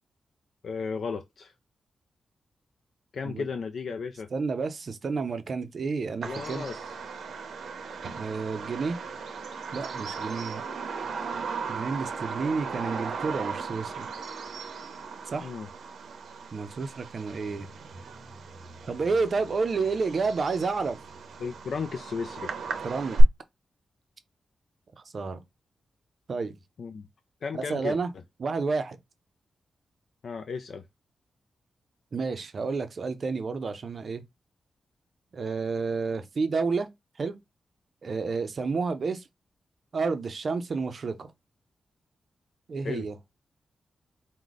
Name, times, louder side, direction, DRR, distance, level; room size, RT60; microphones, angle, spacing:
voice 1, 0.6-1.5 3.1-4.3 6.2-6.9 15.4-15.7 21.4-22.5 26.8-27.0 27.4-28.0 30.2-30.8 42.8-43.1, left 5 dB, 60° left, 0.4 m, -34 dB
voice 2, 4.3-6.6 8.2-9.0 9.7-10.6 11.7-14.1 15.3-15.5 16.5-17.7 18.9-21.0 22.8-23.2 25.1-25.4 26.3-26.5 27.5-28.1 28.4-29.0 32.1-34.2 35.3-36.9 37.2-37.4 38.0-39.2 39.9-41.3 42.7-43.1, right 4 dB, 45° right, 0.5 m, -30 dB
Bird vocalization bird call bird song, 6.2-23.2, right 4 dB, 80° right, 0.7 m, -35 dB
4.7 x 2.2 x 3.9 m
wide cardioid pair, 145°, 0 cm